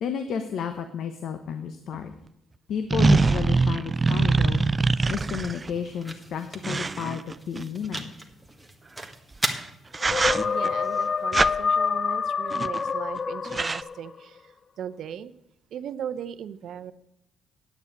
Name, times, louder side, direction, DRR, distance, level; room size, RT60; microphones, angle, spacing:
voice 1, 0.0-2.1 2.7-4.7 5.1-8.1, left 7 dB, 70° left, 8 dB, 1.0 m, -32 dB
sound 1, 1.9-2.0 2.9-5.7 6.6-8.0 9.4-9.6 9.9-10.7 11.3-11.5 12.5-12.9 13.2-13.3 13.4-13.8, right 3 dB, 25° right, 0.4 m, -23 dB
sound 2, 4.6-12.5, right 1 dB, 5° right, 1.7 m, -39 dB
sound 3, 10.0-14.1, left 5 dB, 40° left, 0.3 m, -27 dB
voice 2, 10.4-14.5 14.8-15.3 15.7-16.9, right 9 dB, 70° right, 14 dB, 0.7 m, -38 dB
9.6 x 8.2 x 8.3 m, 0.83 s
cardioid pair, 90°, 0 cm